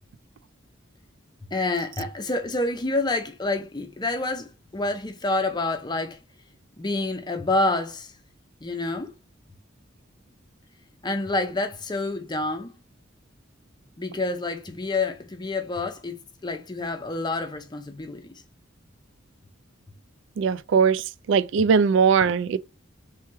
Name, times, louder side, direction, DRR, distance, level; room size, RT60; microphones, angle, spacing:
voice 1, 1.5-6.2 6.8-8.1 8.6-9.1 11.0-12.7 14.0-18.4, left 2 dB, 20° left, 0.5 m, -28 dB
voice 2, 20.4-22.6, right 6 dB, 65° right, 0.3 m, -20 dB
3.4 x 3.0 x 4.5 m
head